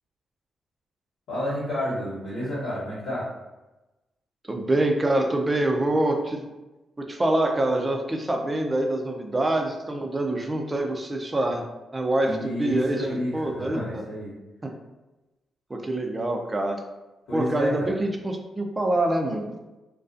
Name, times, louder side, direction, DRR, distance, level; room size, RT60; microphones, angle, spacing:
voice 1, 1.3-3.3 12.2-14.3 17.3-17.9, equal, 80° left, -13 dB, 1.0 m, -30 dB
voice 2, 4.5-6.5 7.0-11.6 11.9-14.0 15.7-16.8 17.3-19.4, right 1 dB, 30° right, 3 dB, 0.5 m, -25 dB
2.4 x 2.2 x 2.5 m, 1.1 s
hypercardioid pair, 45°, 0 cm